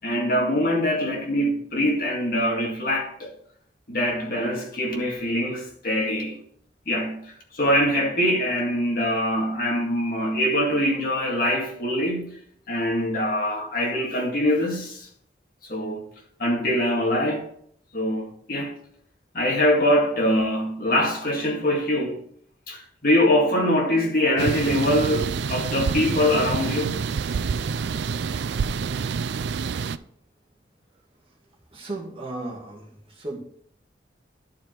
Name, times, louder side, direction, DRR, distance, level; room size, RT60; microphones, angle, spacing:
voice 1, 0.0-3.3 3.9-6.4 6.9-7.2 7.5-12.3 12.7-15.1 15.7-16.0 16.4-17.5 17.9-18.7 19.3-22.2 22.7-27.0, equal, 50° left, 2.0 m, -23 dB
sound 1, 24.4-30.0, right 5 dB, 70° right, 0.4 m, -27 dB
voice 2, 31.7-32.8 33.2-33.4, right 2 dB, 30° right, 2.0 m, -34 dB
11.0 x 4.9 x 4.4 m
head